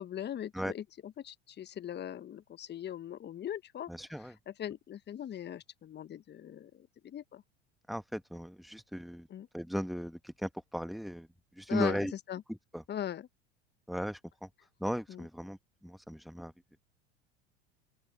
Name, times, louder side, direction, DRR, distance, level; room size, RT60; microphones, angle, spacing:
voice 1, 0.0-3.9 4.6-7.4 9.3-9.5 11.7-12.0 12.3-12.4 12.9-13.3 15.1-15.2, left 10 dB, 30° left, 1.3 m, -40 dB
voice 2, 3.9-4.3 7.9-9.3 9.5-11.3 11.6-12.1 12.5-12.8 13.9-14.5 14.8-15.6 15.8-16.5, equal, ahead, 1.4 m, -36 dB
open air
figure-of-eight pair, 80°, 35 cm